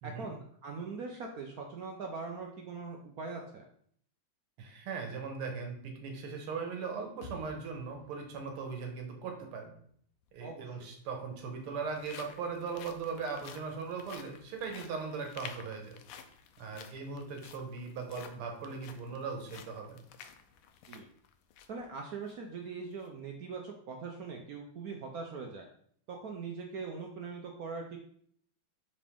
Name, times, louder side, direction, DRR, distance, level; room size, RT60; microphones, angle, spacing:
voice 1, 0.0-3.6 10.4-10.9 20.9-21.1 21.7-25.6 26.1-28.0, right 4 dB, 70° right, 1 dB, 0.8 m, -41 dB
voice 2, 4.6-9.7 10.3-16.0 16.6-20.0, right 5 dB, 90° right, 3 dB, 2.0 m, -39 dB
sound 1, 7.2-11.5, left 1 dB, 45° left, 1.5 m, -55 dB
sound 2, 10.2-10.3 11.3-21.8 22.2-22.3 22.9-23.1, left 7 dB, 90° left, 1.5 m, -52 dB
5.5 x 5.0 x 3.5 m, 0.62 s
omnidirectional pair, 2.4 m